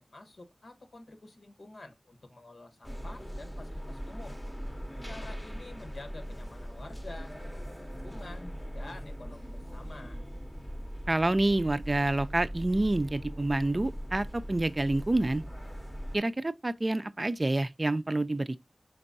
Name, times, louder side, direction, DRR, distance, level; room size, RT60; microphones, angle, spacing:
voice 1, 0.1-4.4 5.1-7.3 7.8-10.2, left 2 dB, 80° left, 1.0 m, -48 dB
sound 1, 2.8-16.2, equal, 15° left, 0.7 m, -40 dB
voice 2, 11.1-15.4 16.1-18.6, right 2 dB, 40° right, 0.4 m, -28 dB
4.4 x 3.8 x 2.6 m
wide cardioid pair, 55°, 0 cm